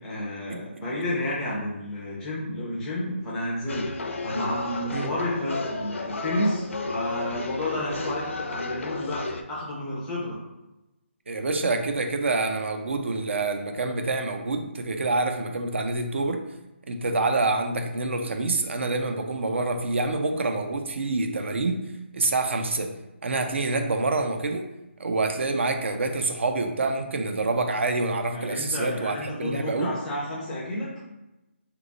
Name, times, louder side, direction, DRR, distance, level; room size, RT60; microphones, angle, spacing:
voice 1, 0.0-3.9 4.2-10.4 28.3-31.0, left 1 dB, 5° left, -6 dB, 0.4 m, -31 dB
sound 1, 3.7-9.4, left 3 dB, 85° left, 0.5 m, -32 dB
voice 2, 11.3-16.4 16.9-21.8 22.1-22.9 23.2-24.6 25.0-29.9, right 3 dB, 70° right, 5 dB, 0.5 m, -27 dB
2.9 x 2.2 x 3.9 m, 0.98 s
hypercardioid pair, 175°, 7 cm